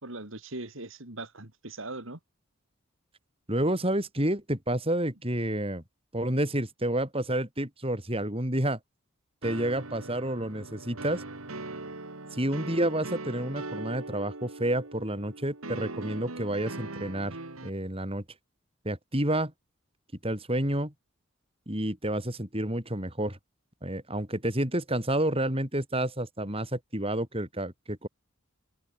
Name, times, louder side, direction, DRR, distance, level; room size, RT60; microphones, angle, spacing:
voice 1, 0.0-2.2, right 2 dB, 70° right, 3.5 m, -40 dB
voice 2, 3.5-5.8 6.1-8.8 9.4-11.2 12.3-17.4 17.6-18.2 18.8-19.5 20.2-20.9 21.7-23.4 23.8-28.1, right 1 dB, 25° right, 7.5 m, -29 dB
sound 1, 9.4-17.7, right 2 dB, 90° right, 2.8 m, -40 dB
head